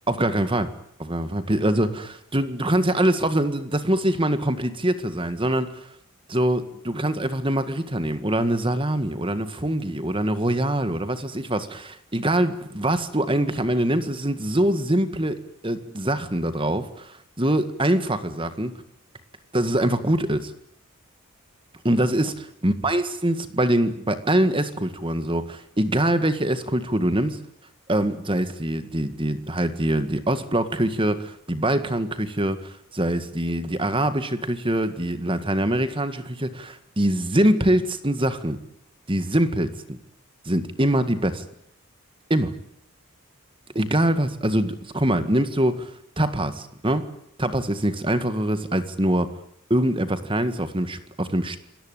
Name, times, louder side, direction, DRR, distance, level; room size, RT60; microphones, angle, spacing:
voice 1, 0.1-5.9 6.3-15.4 15.6-18.7 19.5-20.5 21.9-27.4 27.9-38.6 39.1-40.0 40.5-41.4 42.3-42.5 43.8-45.9 46.2-47.1 47.4-49.3 49.7-51.6, right 1 dB, 25° right, 11 dB, 1.8 m, -24 dB
26.5 x 18.5 x 9.1 m, 0.72 s
head